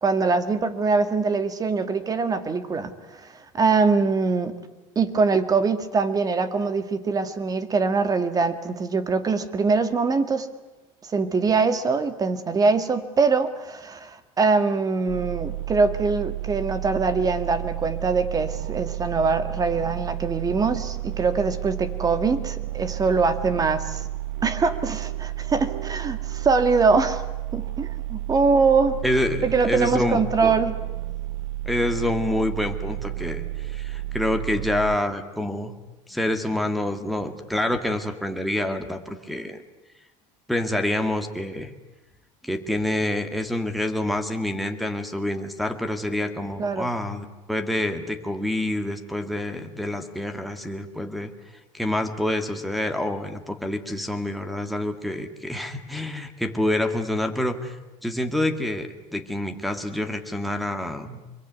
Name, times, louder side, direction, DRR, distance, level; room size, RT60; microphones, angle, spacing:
voice 1, 0.0-2.9 3.5-4.6 5.0-10.5 11.1-24.0 24.4-27.2 27.5-29.0 29.4-30.7 46.6-46.9, right 4 dB, 20° right, 11 dB, 2.0 m, -23 dB
sound 1, 15.1-35.0, right 16 dB, 75° right, 1.2 m, -32 dB
voice 2, 29.0-30.5 31.7-35.7 36.1-39.6 40.5-41.7 42.4-51.3 51.7-61.2, left 1 dB, ahead, 4 dB, 2.2 m, -27 dB
25.5 x 22.5 x 9.5 m, 1.1 s
supercardioid pair, 135°, 17 cm